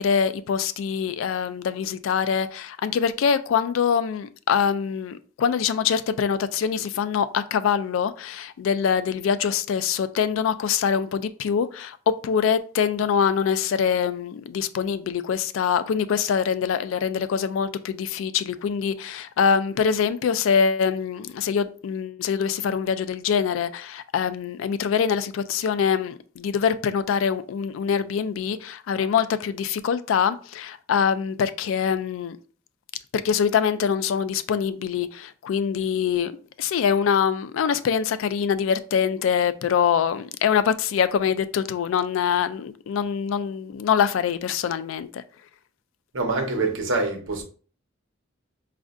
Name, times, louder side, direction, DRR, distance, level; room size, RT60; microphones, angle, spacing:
voice 1, 0.0-32.4 33.1-36.3 36.6-45.2, left 7 dB, 80° left, 0.3 m, -24 dB
voice 2, 46.1-47.4, right 3 dB, 75° right, 1.0 m, -25 dB
5.1 x 2.5 x 2.4 m
head